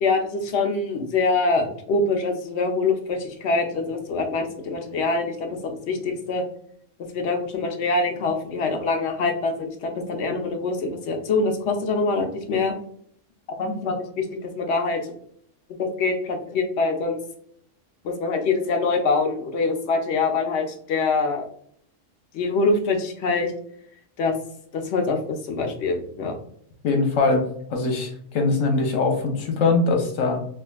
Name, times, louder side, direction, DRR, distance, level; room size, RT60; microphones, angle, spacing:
voice 1, 0.0-6.4 7.1-12.7 13.6-15.0 15.8-17.2 18.0-21.5 22.3-23.5 24.2-24.3 24.7-26.4, left 3 dB, 65° left, 4 dB, 0.8 m, -24 dB
voice 2, 26.8-30.4, left 3 dB, 85° left, 2 dB, 1.1 m, -22 dB
3.6 x 2.3 x 2.3 m, 0.65 s
omnidirectional pair, 1.3 m